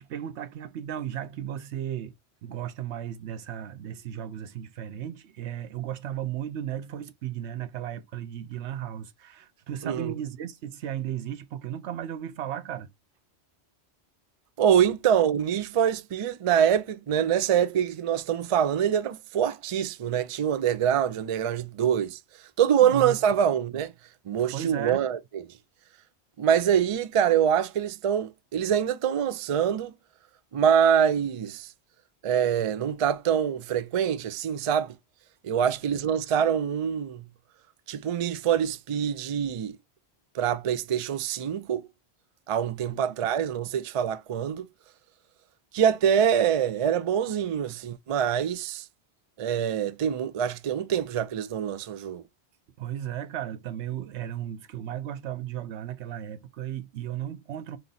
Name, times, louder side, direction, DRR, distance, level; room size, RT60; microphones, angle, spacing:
voice 1, 0.0-2.1 2.4-12.9 22.8-23.1 24.5-25.1 42.9-43.0 52.8-57.8, right 10 dB, 90° right, 1.0 m, -35 dB
voice 2, 9.8-10.1 14.6-22.2 22.6-23.9 24.3-25.4 26.4-29.9 30.5-31.7 32.2-34.9 35.4-37.2 37.9-39.8 40.3-41.9 42.5-44.7 45.7-48.9 49.4-52.2, right 8 dB, 50° right, 0.4 m, -25 dB
4.0 x 3.0 x 3.9 m
omnidirectional pair, 1.1 m